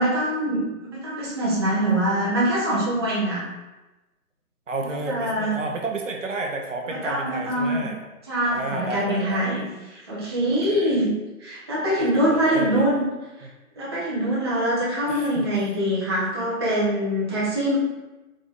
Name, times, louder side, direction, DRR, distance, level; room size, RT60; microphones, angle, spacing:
voice 1, 0.0-3.4 4.8-5.5 6.9-7.8 8.3-11.1 11.4-13.0 13.8-17.8, right 1 dB, 20° right, -8 dB, 0.7 m, -24 dB
voice 2, 4.7-8.0 8.5-9.4 10.7-11.0 12.0-12.8 13.4-13.5 15.1-15.5, right 2 dB, 55° right, 2 dB, 0.8 m, -31 dB
3.8 x 3.8 x 3.5 m, 1.1 s
figure-of-eight pair, 145°, 44 cm